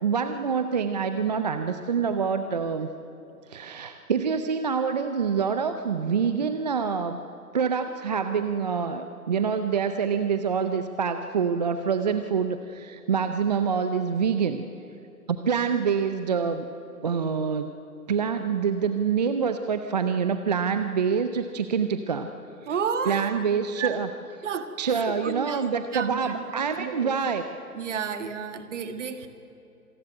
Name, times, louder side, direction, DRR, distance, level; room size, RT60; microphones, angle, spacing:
voice 1, 0.0-2.9 3.5-7.2 7.5-14.7 15.3-16.7 17.0-17.7 18.1-22.3 22.6-22.7 23.1-24.1 24.8-27.4, right 6 dB, 30° right, 8 dB, 0.6 m, -26 dB
voice 2, 22.7-23.4 23.8-24.0 24.4-25.7 25.9-27.2 27.7-29.3, right 6 dB, 50° right, 8 dB, 2.0 m, -32 dB
26.5 x 14.5 x 9.8 m, 2.8 s
hypercardioid pair, 150°, 46 cm